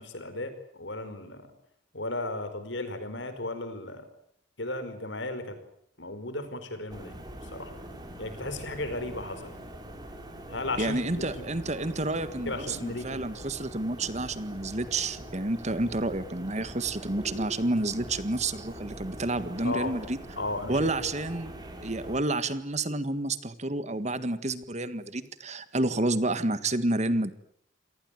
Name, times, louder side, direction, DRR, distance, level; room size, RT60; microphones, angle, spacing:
voice 1, 0.0-1.5 1.9-4.0 4.6-5.6 6.0-7.1 7.5-7.7 8.2-9.5 10.5-11.5 12.4-13.2 19.6-19.9 20.4-20.9, left 2 dB, 70° left, 10 dB, 5.0 m, -35 dB
sound 1, 6.9-22.2, right 1 dB, 20° right, 5.3 m, -43 dB
voice 2, 10.8-20.2 20.7-21.5 21.8-27.3, right 2 dB, 35° right, 13 dB, 1.6 m, -29 dB
27.0 x 19.5 x 9.2 m, 0.69 s
head